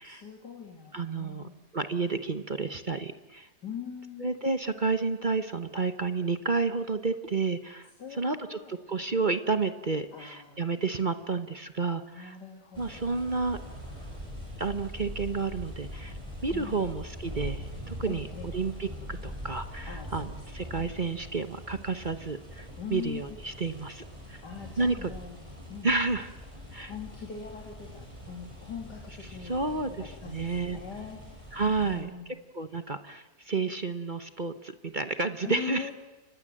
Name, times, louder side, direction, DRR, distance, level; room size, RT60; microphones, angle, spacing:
voice 1, 0.0-1.5 3.6-4.4 8.0-8.7 10.1-10.9 12.1-13.4 16.5-16.9 18.1-18.5 19.9-20.9 22.8-23.4 24.4-25.9 26.7-31.2 31.8-32.3 35.4-35.9, left 6 dB, 80° left, 2 dB, 3.3 m, -42 dB
voice 2, 0.9-3.5 4.2-12.4 12.8-13.6 14.6-24.4 24.8-25.1 25.8-26.3 26.7-26.9 29.4-30.8 31.5-32.1 32.5-35.9, right 4 dB, 30° right, 9 dB, 1.1 m, -31 dB
sound 1, 12.7-32.0, equal, 15° right, 6.6 m, -43 dB
29.5 x 25.5 x 7.7 m, 1.1 s
omnidirectional pair, 1.8 m